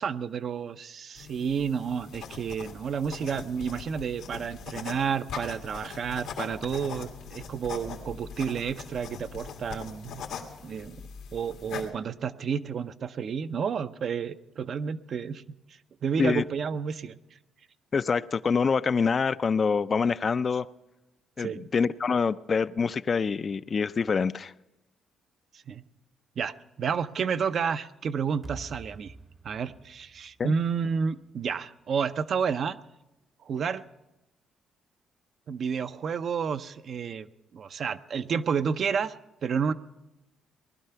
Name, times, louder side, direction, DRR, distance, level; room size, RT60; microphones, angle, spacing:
voice 1, 0.0-10.2 10.6-11.0 11.3-15.6 16.0-17.2 21.4-21.7 25.7-25.8 26.4-29.1 29.4-32.8 33.4-33.8 35.5-37.3 37.5-39.7, right 6 dB, 55° right, 11 dB, 0.6 m, -30 dB
sound 1, 1.2-11.9, left 6 dB, 90° left, 2.0 m, -41 dB
voice 2, 17.9-20.7 21.4-24.5 30.4-30.6, left 5 dB, 40° left, 13 dB, 0.4 m, -26 dB
sound 2, 28.4-31.5, right 2 dB, 30° right, 0.8 m, -47 dB
19.0 x 12.0 x 5.7 m, 0.98 s
cardioid pair, 90°, 0 cm